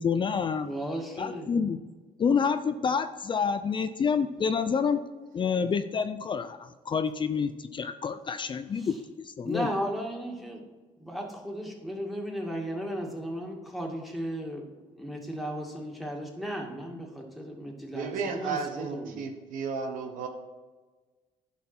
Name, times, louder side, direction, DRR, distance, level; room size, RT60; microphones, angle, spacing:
voice 1, 0.0-0.7 1.2-1.8 2.2-5.0 5.3-9.0 9.4-9.7, left 6 dB, 35° left, 10 dB, 0.5 m, -28 dB
voice 2, 0.6-1.6 8.7-9.0 9.4-10.6 11.0-19.2, equal, ahead, -1 dB, 2.3 m, -35 dB
voice 3, 17.9-20.3, right 5 dB, 80° right, 5 dB, 1.2 m, -33 dB
11.0 x 5.8 x 4.4 m, 1.3 s
cardioid pair, 90°, 13 cm